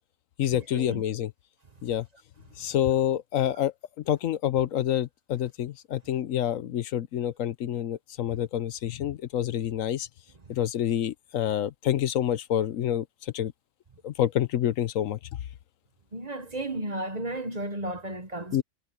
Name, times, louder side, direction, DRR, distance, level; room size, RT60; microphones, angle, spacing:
voice 1, 0.4-1.3 1.8-2.1 2.6-3.7 4.1-10.1 10.5-13.5 14.0-15.2 18.5-18.6, left 11 dB, 75° left, 1.1 m, -27 dB
voice 2, 16.1-18.6, right 1 dB, 30° right, 1.2 m, -33 dB
omnidirectional pair, 1.4 m